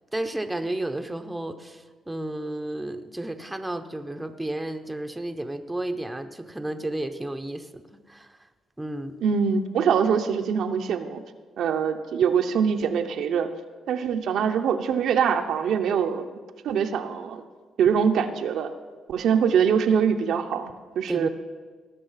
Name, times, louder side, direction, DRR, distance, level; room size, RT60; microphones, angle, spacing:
voice 1, 0.1-8.4 8.8-9.2 21.1-21.3, right 1 dB, 10° right, 6 dB, 0.8 m, -32 dB
voice 2, 9.2-11.2 11.6-13.5 13.9-16.3 16.6-17.4 17.8-18.7 19.1-21.3, right 7 dB, 75° right, 6 dB, 0.8 m, -23 dB
18.5 x 6.3 x 5.7 m, 1.4 s
cardioid pair, 90°, 0 cm